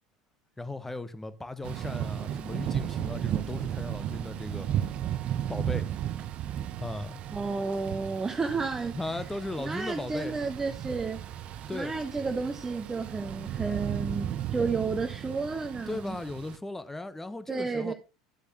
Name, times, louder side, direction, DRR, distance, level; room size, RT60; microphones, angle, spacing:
voice 1, 0.6-4.7 5.5-5.9 6.8-7.2 8.9-10.4 11.7-11.9 15.9-17.9, left 2 dB, 10° left, 1.0 m, -37 dB
Thunder / Rain, 1.6-16.6, right 11 dB, 40° right, 0.8 m, -35 dB
voice 2, 7.3-9.2 9.6-11.2 11.7-16.2 17.5-17.9, right 4 dB, 15° right, 0.9 m, -32 dB
12.0 x 8.2 x 2.9 m
figure-of-eight pair, 75°, 3 cm